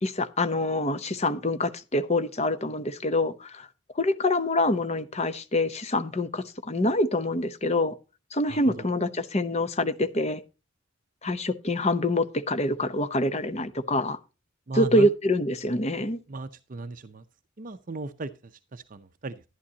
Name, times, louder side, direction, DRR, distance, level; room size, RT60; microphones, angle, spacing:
voice 1, 0.0-3.7 4.0-8.0 8.3-10.4 11.2-14.2 14.8-16.2, left 1 dB, 30° left, 0.8 m, -26 dB
voice 2, 8.5-8.9 14.7-15.1 16.3-17.2 17.6-19.4, right 2 dB, 40° right, 0.6 m, -36 dB
11.5 x 11.0 x 2.8 m
head